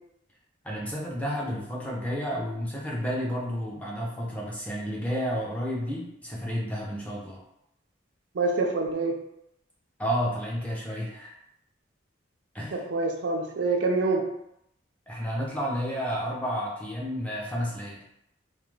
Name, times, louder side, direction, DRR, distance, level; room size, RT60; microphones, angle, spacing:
voice 1, 0.6-7.4 10.0-11.3 12.5-12.8 15.1-18.0, equal, 5° left, -4 dB, 0.4 m, -31 dB
voice 2, 8.3-9.2 12.7-14.3, right 3 dB, 65° right, 2 dB, 0.4 m, -26 dB
2.3 x 2.2 x 3.1 m, 0.79 s
head